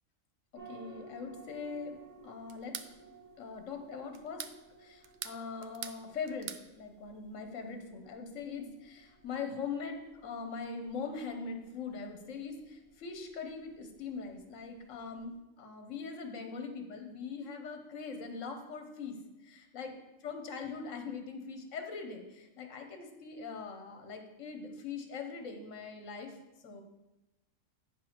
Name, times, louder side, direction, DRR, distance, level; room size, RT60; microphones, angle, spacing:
voice 1, 0.5-2.8 3.4-4.4 4.8-19.9 20.2-26.4 26.6-26.8, left 5 dB, 70° left, 5 dB, 1.3 m, -42 dB
sound 1, 0.5-15.3, right 3 dB, 75° right, 4.0 m, -58 dB
sound 2, 2.5-2.9 4.1-4.6 5.0-6.0 6.3-6.7, right 8 dB, 90° right, 0.4 m, -42 dB
8.3 x 4.7 x 5.8 m, 1.0 s
omnidirectional pair, 1.4 m